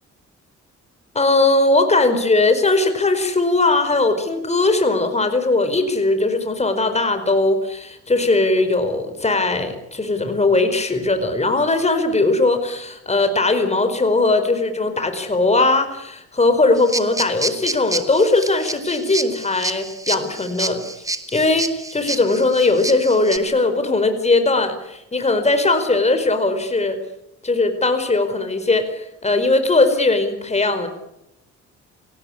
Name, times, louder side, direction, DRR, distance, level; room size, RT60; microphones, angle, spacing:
voice 1, 1.1-20.8 21.3-27.0 27.4-30.9, left 2 dB, 20° left, 8 dB, 4.8 m, -19 dB
sound 1, 16.8-23.4, right 2 dB, 10° right, 2.5 m, -28 dB
27.0 x 18.5 x 9.9 m, 0.85 s
cardioid pair, 90°, 30 cm